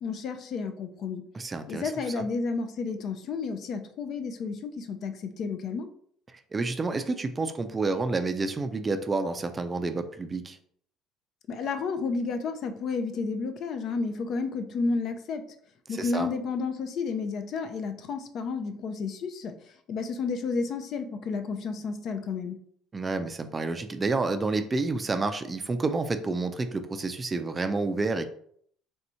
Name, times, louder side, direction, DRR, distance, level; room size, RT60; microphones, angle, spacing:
voice 1, 0.0-1.2 1.7-5.9 11.5-15.4 15.9-19.5 19.9-22.6, left 4 dB, 55° left, 8 dB, 0.5 m, -31 dB
voice 2, 1.3-2.3 6.3-10.6 15.9-16.3 22.9-28.3, right 3 dB, 20° right, 8 dB, 0.4 m, -29 dB
3.5 x 2.7 x 4.3 m, 0.63 s
cardioid pair, 115°, 0 cm